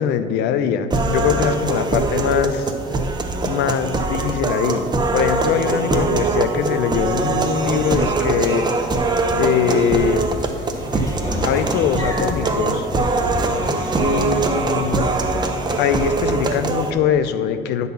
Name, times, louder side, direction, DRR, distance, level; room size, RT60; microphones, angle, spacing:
voice 1, 0.0-2.7 3.4-8.7 9.4-10.3 11.4-12.9 14.0-15.1 15.8-17.9, left 8 dB, 85° left, 10 dB, 0.6 m, -22 dB
sound 1, 0.9-16.9, right 3 dB, 25° right, 0.8 m, -22 dB
Train / Sliding door, 9.8-16.4, left 1 dB, 20° left, 2.5 m, -32 dB
10.5 x 4.1 x 6.9 m, 2.3 s
cardioid pair, 110°, 17 cm